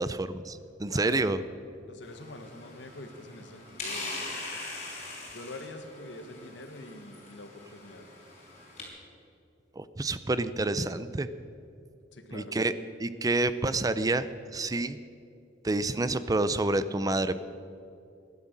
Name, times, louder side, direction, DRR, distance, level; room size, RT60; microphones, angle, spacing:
voice 1, 0.0-1.4 9.8-11.3 12.3-12.7 13.0-15.0 15.6-17.4, right 2 dB, 20° right, 14 dB, 0.5 m, -28 dB
voice 2, 0.9-1.3 1.9-4.2 5.3-8.1 12.1-12.6, left 2 dB, 70° left, 7 dB, 1.5 m, -45 dB
sound 1, 2.0-8.8, left 2 dB, 40° left, 4.9 m, -42 dB
16.5 x 11.0 x 7.5 m, 2.5 s
head